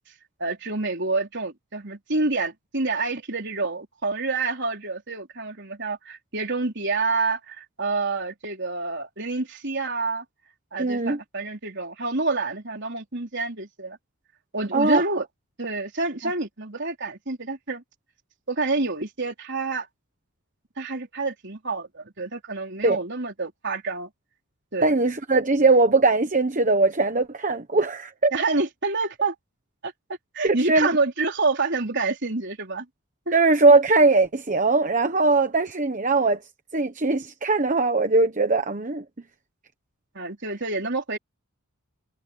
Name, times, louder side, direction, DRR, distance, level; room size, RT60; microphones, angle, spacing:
voice 1, 0.4-10.2 10.7-14.0 14.5-15.3 15.6-17.8 18.5-19.9 20.8-24.1 24.7-25.0 28.3-29.3 29.8-29.9 30.3-32.9 33.3-33.4 40.1-41.2, right 3 dB, 55° right, 4.4 m, -28 dB
voice 2, 10.8-11.2 14.7-15.0 22.8-23.0 24.8-28.3 30.4-31.0 33.3-36.4 36.7-39.0, right 3 dB, 35° right, 1.1 m, -20 dB
head